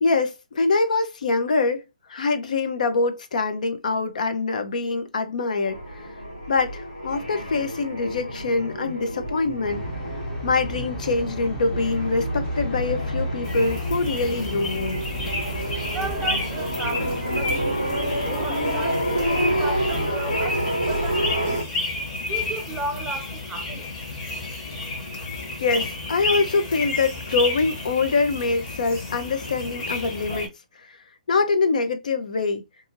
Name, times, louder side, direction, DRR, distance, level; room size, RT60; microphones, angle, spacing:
voice 1, 0.0-1.8 2.1-6.0 6.5-9.8 10.4-15.0 25.6-30.5 31.3-32.6, left 3 dB, 70° left, 0.6 m, -24 dB
sound 1, 5.6-21.6, equal, 90° left, 1.4 m, -28 dB
sound 2, 9.6-20.1, right 1 dB, 20° left, 0.9 m, -36 dB
sound 3, 13.4-30.5, left 2 dB, 40° left, 1.3 m, -31 dB
voice 2, 15.9-21.7 22.2-23.9, right 4 dB, 15° right, 0.4 m, -35 dB
2.7 x 2.6 x 2.5 m
hypercardioid pair, 130°, 4 cm